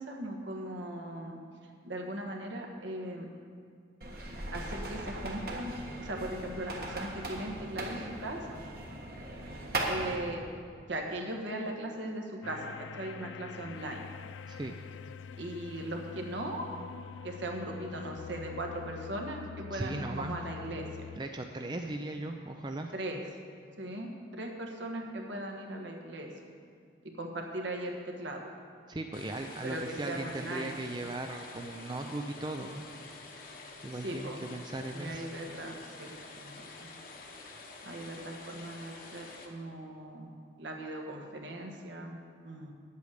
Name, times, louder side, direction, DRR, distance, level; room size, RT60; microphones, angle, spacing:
voice 1, 0.0-1.4 1.8-3.3 4.5-8.6 9.9-10.4 10.9-14.1 15.4-16.7 17.2-21.1 22.9-23.2 23.8-26.3 27.0-28.4 29.6-30.8 34.0-34.4 34.9-36.1 36.4-36.9 37.8-40.3 40.6-42.7, right 1 dB, 75° right, 2 dB, 1.4 m, -39 dB
sound 1, 4.0-10.2, right 1 dB, 50° right, 1.3 m, -38 dB
sound 2, 12.4-21.2, left 7 dB, 75° left, 0.3 m, -45 dB
voice 2, 19.7-20.4 21.2-22.9 28.9-32.8 33.8-35.3, right 2 dB, 25° right, 4 dB, 0.4 m, -38 dB
sound 3, 29.1-39.5, left 3 dB, 50° left, 1.1 m, -48 dB
10.0 x 8.3 x 6.5 m, 2.2 s
head